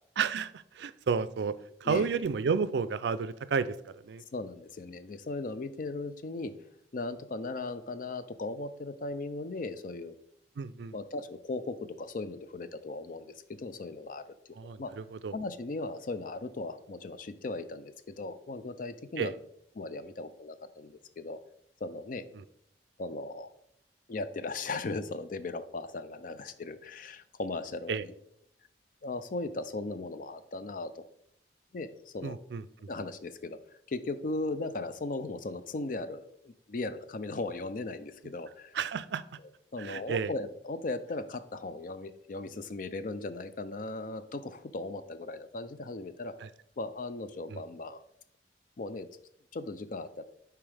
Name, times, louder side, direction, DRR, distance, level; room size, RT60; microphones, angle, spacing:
voice 1, 0.2-4.2 10.6-10.9 14.6-15.4 19.2-19.3 27.9-28.0 32.2-32.9 38.7-39.2 39.8-40.3 46.4-46.5 47.5-47.6, right 5 dB, 70° right, 15 dB, 0.4 m, -32 dB
voice 2, 4.3-6.5 6.9-10.1 10.9-14.9 15.3-19.3 19.8-21.4 21.8-22.2 23.0-23.5 24.1-28.1 29.0-31.0 31.7-32.4 32.9-33.6 33.9-38.8 39.7-46.4 46.8-48.0 48.8-49.1 49.5-50.2, left 3 dB, 50° left, 12 dB, 0.4 m, -37 dB
7.1 x 4.7 x 3.4 m, 0.74 s
head